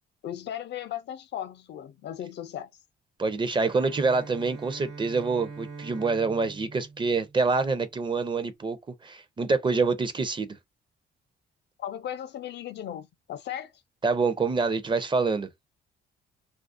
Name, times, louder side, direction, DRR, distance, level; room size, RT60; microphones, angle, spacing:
voice 1, 0.2-2.7 11.8-13.7, left 10 dB, 60° left, 0.5 m, -36 dB
voice 2, 3.2-8.8 9.0-10.5 14.0-15.5, right 4 dB, 25° right, 0.5 m, -26 dB
Bowed string instrument, 3.6-7.7, right 4 dB, 60° right, 0.7 m, -43 dB
2.4 x 2.1 x 2.4 m
cardioid pair, 90°, 20 cm